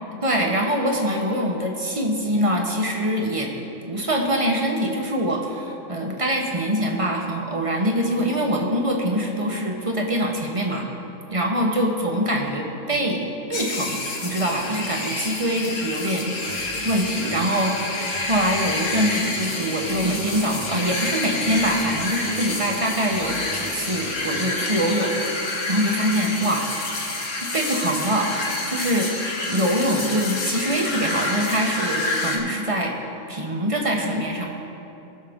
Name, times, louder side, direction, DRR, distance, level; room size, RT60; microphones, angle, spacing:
voice 1, 0.2-3.5 3.8-10.9 11.3-25.2 25.7-26.7 27.4-28.3 28.7-29.1 29.5-32.9 33.3-34.5, equal, 25° right, 0 dB, 0.9 m, -24 dB
sound 1, 13.5-32.4, left 2 dB, 75° left, 1.7 m, -28 dB
sound 2, 16.4-26.0, right 1 dB, 80° right, 2.1 m, -40 dB
18.0 x 6.4 x 3.6 m, 2.9 s
omnidirectional pair, 1.5 m